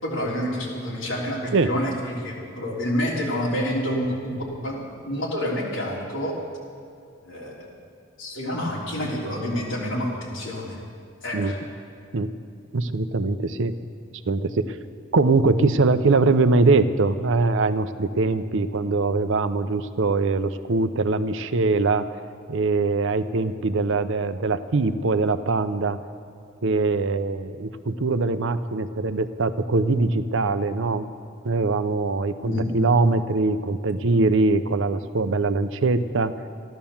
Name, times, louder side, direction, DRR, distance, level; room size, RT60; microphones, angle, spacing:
voice 1, 0.0-4.4 4.6-6.4 7.2-7.7 8.2-10.8 11.2-11.6 32.4-32.7, equal, 65° left, -4 dB, 3.6 m, -28 dB
voice 2, 12.7-13.8 14.3-14.7 15.1-22.1 22.5-26.0 26.6-31.1 31.4-36.3, right 3 dB, 65° right, 11 dB, 0.7 m, -22 dB
14.5 x 11.5 x 7.2 m, 2.5 s
head